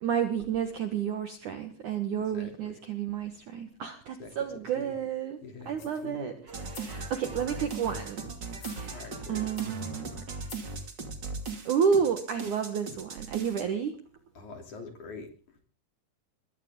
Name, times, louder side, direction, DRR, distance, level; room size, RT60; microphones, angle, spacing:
voice 1, 0.0-5.4 5.7-8.4 8.6-10.5 11.6-14.0, right 7 dB, 60° right, 8 dB, 2.2 m, -31 dB
voice 2, 2.3-2.7 4.2-4.3 4.8-4.9 5.4-6.3 7.3-7.5 8.9-9.5 14.3-15.6, left 4 dB, 45° left, 5 dB, 4.3 m, -44 dB
sound 1, 5.7-6.1 6.6-7.0 7.5-8.0 8.5-9.1 9.6-9.9 10.4-10.8 11.4-11.7 12.3-12.4, left 10 dB, 70° left, 4.3 m, -51 dB
sound 2, 6.5-13.6, right 4 dB, 35° right, 2.1 m, -38 dB
22.0 x 16.5 x 3.8 m, 0.39 s
omnidirectional pair, 5.2 m